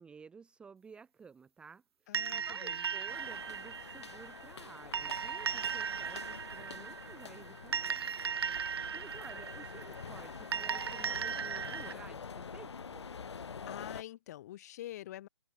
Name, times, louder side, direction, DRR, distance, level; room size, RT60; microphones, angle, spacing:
voice 1, 0.0-1.8 2.1-2.2 2.4-8.0 8.9-13.1, right 5 dB, 5° right, 1.3 m, -54 dB
voice 2, 2.1-2.9 13.7-15.3, left 13 dB, 35° left, 2.3 m, -46 dB
sound 1, 2.1-11.9, right 7 dB, 60° right, 0.7 m, -38 dB
sound 2, 3.1-14.0, left 6 dB, 65° left, 0.9 m, -47 dB
Crackle, 4.1-13.4, left 2 dB, 85° left, 3.9 m, -58 dB
figure-of-eight pair, 140°, 15 cm